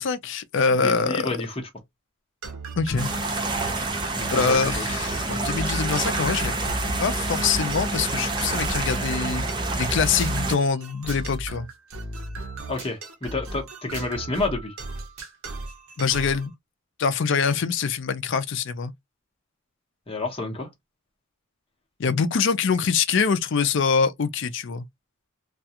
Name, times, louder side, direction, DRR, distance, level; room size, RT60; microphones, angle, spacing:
voice 1, 0.0-1.3 2.8-3.2 4.3-6.6 7.0-9.4 9.8-11.7 16.0-16.5 17.0-18.9 22.0-24.9, left 5 dB, 60° left, 0.4 m, -24 dB
voice 2, 0.8-1.6 4.2-4.8 12.7-14.7 20.1-20.7, left 2 dB, 25° left, 0.9 m, -29 dB
sound 1, 2.4-16.5, right 2 dB, 80° right, 0.8 m, -37 dB
sound 2, 3.0-10.6, right 2 dB, 20° right, 0.5 m, -27 dB
sound 3, 10.2-10.4 11.1-11.3 12.8-12.9 13.9-14.1 15.2-15.3, right 4 dB, 60° right, 1.1 m, -40 dB
2.3 x 2.3 x 2.8 m
head